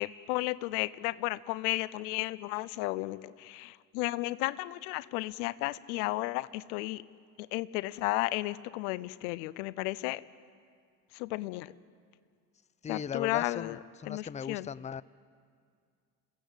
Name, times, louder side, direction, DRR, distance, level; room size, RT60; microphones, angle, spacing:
voice 1, 0.0-7.0 7.5-10.2 11.1-11.7 12.9-13.8 14.1-14.7, left 19 dB, 80° left, 17 dB, 0.7 m, -33 dB
voice 2, 12.8-15.0, left 7 dB, 15° left, 19 dB, 0.5 m, -38 dB
28.0 x 16.0 x 8.0 m, 2.2 s
hypercardioid pair, 55°, 44 cm